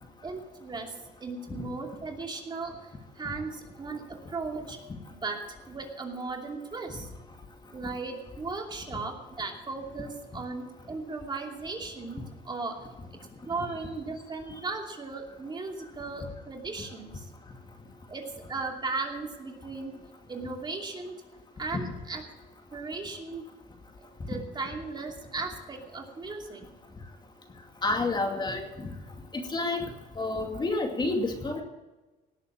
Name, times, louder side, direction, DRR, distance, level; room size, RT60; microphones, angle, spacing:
voice 1, 0.2-4.8 5.2-5.4 5.7-7.1 7.7-12.8 13.5-17.3 18.1-19.9 20.3-21.2 21.6-22.2 22.7-23.4 24.3-26.7, right 3 dB, 25° right, 2 dB, 2.7 m, -37 dB
voice 2, 27.8-28.9 29.5-29.9 30.2-31.6, left 2 dB, 25° left, 3 dB, 2.4 m, -29 dB
18.0 x 8.0 x 7.4 m, 1.1 s
cardioid pair, 110°, 17 cm